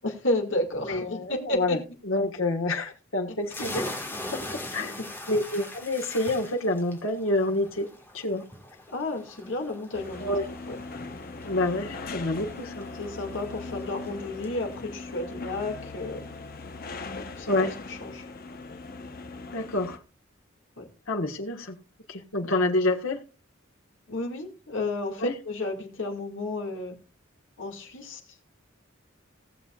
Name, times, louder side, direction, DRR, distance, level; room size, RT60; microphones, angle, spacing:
voice 1, 0.0-1.8 8.9-10.3 10.7-10.8 13.0-16.3 17.2-18.2 20.8-20.9 24.1-27.0 27.6-28.2, left 2 dB, 65° left, 2 dB, 2.4 m, -32 dB
voice 2, 0.9-1.8 2.0-3.8 4.3-4.4 4.7-5.0 5.3-7.9 8.1-8.4 10.2-10.5 11.4-12.9 17.5-17.7 19.5-20.0 21.1-21.8 22.1-23.2 25.2-25.3, left 2 dB, 90° left, 2 dB, 1.6 m, -27 dB
sound 1, 3.5-16.8, left 1 dB, 10° left, 1.8 m, -42 dB
sound 2, 9.9-20.0, left 3 dB, 45° left, 1.0 m, -40 dB
18.5 x 7.0 x 2.5 m, 0.32 s
head